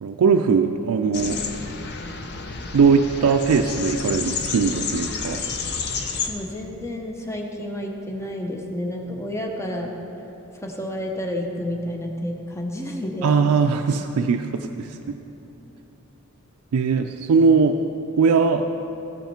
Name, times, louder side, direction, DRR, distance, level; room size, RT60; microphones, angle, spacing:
voice 1, 0.0-1.4 2.7-5.4 13.2-15.2 16.7-17.8 18.2-18.6, right 5 dB, 90° right, 4 dB, 0.4 m, -20 dB
sound 1, 1.1-6.3, left 5 dB, 50° left, 0.6 m, -30 dB
voice 2, 6.3-9.9 10.6-13.3, left 1 dB, 15° left, 1 dB, 0.7 m, -30 dB
13.5 x 5.7 x 4.3 m, 3.0 s
head